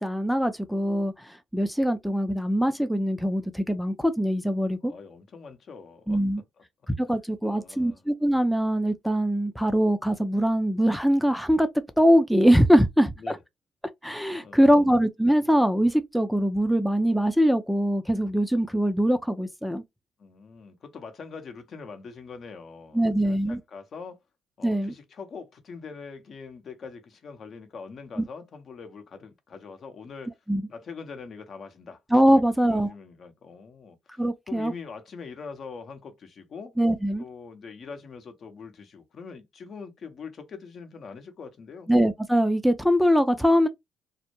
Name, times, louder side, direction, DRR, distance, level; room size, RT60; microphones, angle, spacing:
voice 1, 0.0-4.9 6.1-6.4 7.0-11.7 12.0-13.4 14.0-19.8 22.9-23.6 24.6-24.9 30.5-30.6 32.1-32.9 34.2-34.7 36.8-37.2 41.9-43.7, equal, ahead, 0.4 m, -22 dB
voice 2, 4.8-6.2 6.6-6.7 7.4-8.0 13.2-13.4 14.4-14.9 20.2-24.2 24.6-30.3 30.7-32.0 32.3-34.2 34.5-36.7 37.2-41.9, left 5 dB, 55° left, 0.7 m, -43 dB
2.1 x 2.1 x 2.9 m
hypercardioid pair, 55°, 0 cm